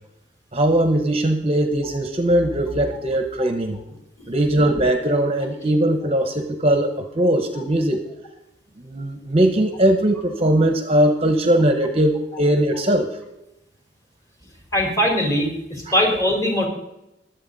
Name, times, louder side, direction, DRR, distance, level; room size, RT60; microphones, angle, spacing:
voice 1, 0.5-3.8 4.3-8.0 8.8-13.1 15.9-16.0, right 1 dB, 35° right, 7 dB, 1.0 m, -20 dB
voice 2, 14.7-16.7, equal, 15° left, 0 dB, 4.2 m, -21 dB
22.0 x 8.0 x 4.1 m, 0.86 s
head